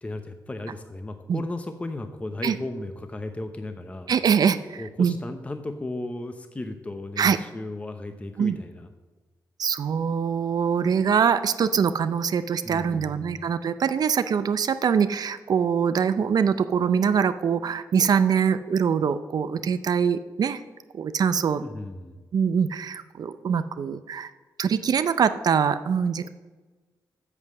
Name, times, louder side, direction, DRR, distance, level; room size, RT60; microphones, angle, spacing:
voice 1, 0.0-4.1 4.8-8.9 12.6-13.3 21.6-22.2, left 2 dB, 15° left, 7 dB, 0.7 m, -35 dB
voice 2, 4.1-5.2 7.2-7.4 8.4-8.6 9.6-20.6 20.9-21.6 22.3-24.3 24.6-26.3, right 7 dB, 60° right, 12 dB, 0.5 m, -23 dB
8.3 x 7.2 x 6.7 m, 1.3 s
cardioid pair, 100°, 7 cm